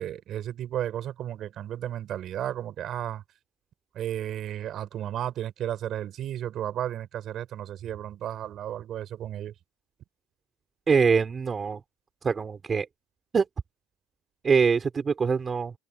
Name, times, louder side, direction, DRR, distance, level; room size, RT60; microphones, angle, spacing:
voice 1, 0.0-3.2 3.9-9.5, right 11 dB, 40° right, 6.6 m, -33 dB
voice 2, 10.9-11.8 12.2-12.9 13.3-13.5 14.4-15.7, right 5 dB, 20° right, 4.1 m, -23 dB
cardioid pair, 150°, 0 cm